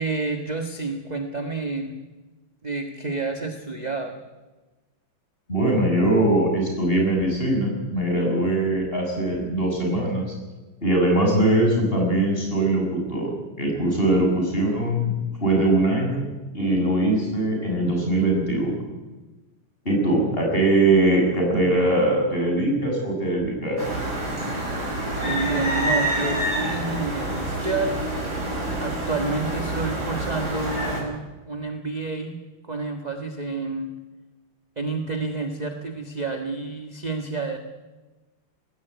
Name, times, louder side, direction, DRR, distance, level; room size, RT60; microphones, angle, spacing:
voice 1, 0.0-1.9 2.6-4.1 25.1-28.0 28.8-32.4 32.6-33.9 34.8-37.6, right 3 dB, 20° right, 5 dB, 1.4 m, -29 dB
voice 2, 5.5-10.3 10.8-13.3 13.6-15.1 15.4-16.2 16.5-18.8 19.9-23.8, right 1 dB, 25° left, 0 dB, 7.1 m, -21 dB
sound 1, 23.8-31.0, right 1 dB, 50° right, 6.6 m, -27 dB
19.5 x 16.5 x 9.4 m, 1.2 s
omnidirectional pair, 2.3 m